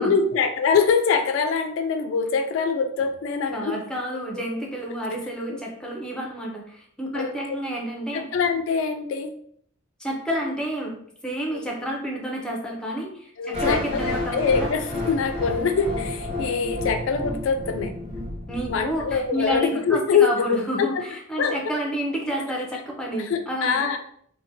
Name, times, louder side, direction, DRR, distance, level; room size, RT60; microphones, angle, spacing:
voice 1, 0.0-3.8 5.5-5.6 7.1-7.3 8.1-9.3 11.5-11.6 13.4-14.0 14.3-17.9 18.7-21.0 21.4-21.6 23.2-24.0, left 5 dB, 75° left, 7 dB, 0.3 m, -24 dB
voice 2, 3.5-8.3 10.0-11.0 11.2-14.7 18.5-24.0, right 1 dB, 5° left, -1 dB, 0.4 m, -30 dB
sound 1, 13.5-19.5, left 2 dB, 30° right, 1.0 m, -31 dB
2.6 x 2.1 x 2.6 m, 0.64 s
head